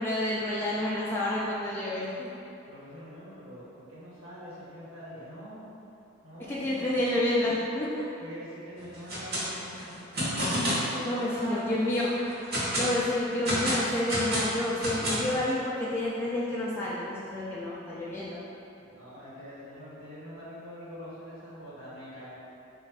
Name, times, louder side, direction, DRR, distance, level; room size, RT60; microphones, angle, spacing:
voice 1, 0.0-2.3 6.5-8.1 11.1-12.1 12.8-18.4, left 1 dB, 10° left, -8 dB, 0.3 m, -29 dB
voice 2, 2.6-5.7 6.2-7.0 8.2-9.9 10.9-11.6 17.4-17.5 18.7-22.3, equal, 65° right, -9 dB, 1.3 m, -44 dB
sound 1, 8.9-9.5 9.7-10.9 11.4-11.5 12.0-12.9 13.5-15.4, equal, 50° right, 1.0 m, -29 dB
4.1 x 2.4 x 3.4 m, 2.8 s
head